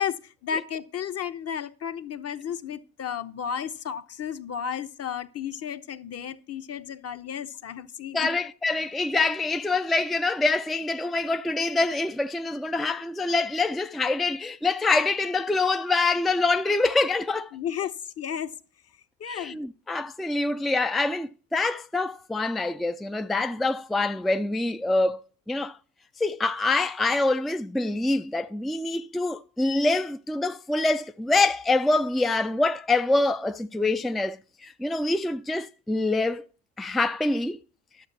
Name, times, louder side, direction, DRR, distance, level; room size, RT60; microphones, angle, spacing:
voice 1, 0.0-8.3 17.5-18.5 19.2-19.6, left 8 dB, 40° left, 1.0 m, -33 dB
voice 2, 8.1-17.5 19.2-25.2 25.5-25.8 26.2-36.5 36.8-37.6, left 3 dB, ahead, 0.4 m, -25 dB
11.5 x 7.1 x 4.1 m
hypercardioid pair, 55°, 38 cm